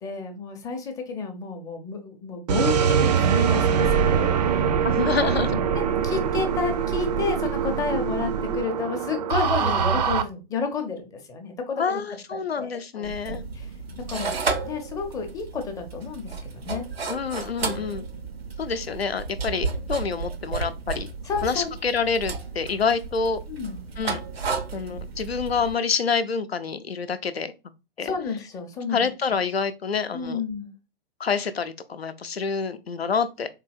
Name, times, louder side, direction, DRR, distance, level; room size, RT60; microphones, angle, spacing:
voice 1, 0.0-4.3 5.4-5.6 6.0-12.0 12.6-12.7 13.0-13.7 14.1-14.3 14.6-16.2 16.5-16.9 17.6-17.9 21.3-21.7 23.5-23.8 28.0-29.0 30.1-30.7, left 5 dB, 10° left, 0.5 m, -31 dB
sound 1, 2.5-10.2, right 7 dB, 45° right, 0.5 m, -23 dB
voice 2, 4.8-5.6 9.6-9.8 11.8-13.4 17.1-18.1 18.6-21.1 21.4-23.4 24.0-24.2 24.7-27.5 28.0-28.1 28.9-30.4 31.2-33.5, left 5 dB, 85° left, 0.5 m, -27 dB
sound 2, 13.0-25.8, right 4 dB, 80° right, 0.7 m, -33 dB
3.9 x 2.8 x 2.3 m
figure-of-eight pair, 110°, 30 cm